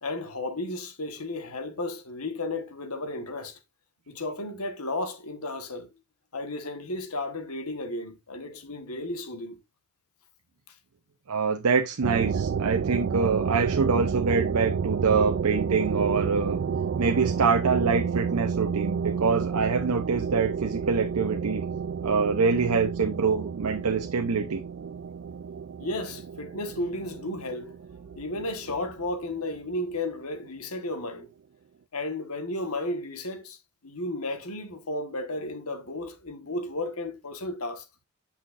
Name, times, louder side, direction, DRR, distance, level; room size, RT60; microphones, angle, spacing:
voice 1, 0.0-3.6 4.1-5.9 6.3-9.6 10.7-10.8 25.8-27.7 28.2-31.3 31.9-37.8, left 2 dB, 75° left, 1.4 m, -33 dB
voice 2, 11.3-16.6 17.0-21.6 22.0-24.6, right 5 dB, 85° right, 0.7 m, -25 dB
sound 1, 12.0-29.4, right 6 dB, 55° right, 0.3 m, -30 dB
8.4 x 5.8 x 2.5 m
head